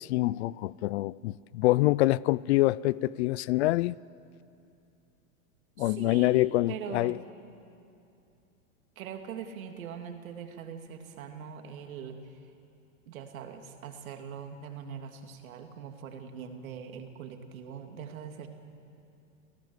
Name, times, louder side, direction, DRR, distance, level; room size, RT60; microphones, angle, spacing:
voice 1, 0.0-4.0 5.8-7.2, left 18 dB, 50° left, 0.5 m, -26 dB
voice 2, 5.8-7.2 9.0-12.4 13.1-18.5, right 7 dB, 75° right, 2.9 m, -42 dB
29.0 x 17.0 x 8.2 m
supercardioid pair, 145°, 42 cm